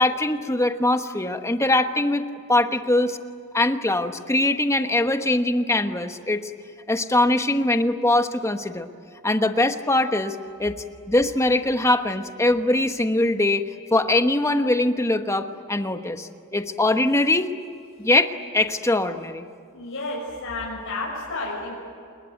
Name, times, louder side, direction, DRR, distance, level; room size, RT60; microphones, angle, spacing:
voice 1, 0.0-3.2 3.5-6.5 6.9-8.9 9.2-10.8 11.1-17.5 18.0-19.5, left 2 dB, 15° left, 8 dB, 1.2 m, -22 dB
voice 2, 19.7-21.7, left 2 dB, 60° left, -4 dB, 6.6 m, -31 dB
28.0 x 21.5 x 9.2 m, 2.4 s
head